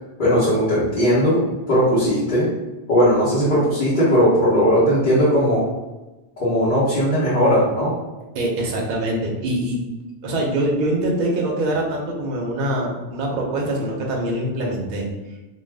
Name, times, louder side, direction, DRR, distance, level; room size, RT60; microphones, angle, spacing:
voice 1, 0.2-1.4 1.7-2.5 2.9-5.6 6.4-7.9, equal, 45° left, -11 dB, 1.0 m, -18 dB
voice 2, 8.3-9.8 10.2-15.1, right 1 dB, 55° right, -1 dB, 0.7 m, -24 dB
2.5 x 2.2 x 3.3 m, 1.1 s
omnidirectional pair, 1.2 m